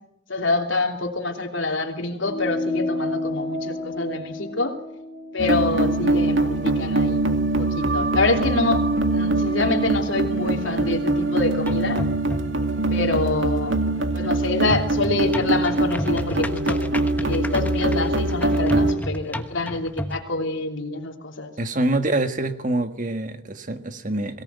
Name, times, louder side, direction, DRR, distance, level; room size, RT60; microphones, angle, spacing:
voice 1, 0.3-4.7 5.3-12.0 12.9-13.8 14.1-16.8 17.2-21.5, left 2 dB, 70° left, 4 dB, 3.1 m, -26 dB
sound 1, 2.2-7.1, left 1 dB, 45° left, 3.9 m, -31 dB
sound 2, 5.4-18.9, right 2 dB, 70° right, 2.2 m, -23 dB
sound 3, 11.7-12.7 14.7-20.2, equal, 10° left, 1.2 m, -32 dB
voice 2, 21.6-24.4, right 2 dB, 40° right, 8 dB, 1.7 m, -25 dB
23.0 x 18.0 x 9.4 m, 0.82 s
head